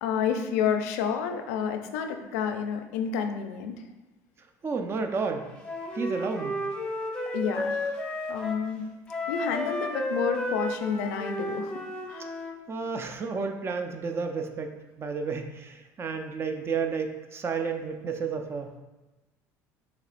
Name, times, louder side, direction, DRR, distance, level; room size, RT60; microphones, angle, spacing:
voice 1, 0.0-3.8 7.3-8.0 8.3-8.8 9.3-11.8 12.1-12.3, left 7 dB, 90° left, 6 dB, 0.4 m, -30 dB
voice 2, 4.6-5.5 5.9-6.6 12.7-18.7, right 5 dB, 35° right, 5 dB, 0.5 m, -31 dB
Wind instrument woodwind instrument, 5.6-8.6 9.1-12.6, equal, 10° left, 0.9 m, -32 dB
5.8 x 3.2 x 2.5 m, 1.1 s
supercardioid pair, 100°, 8 cm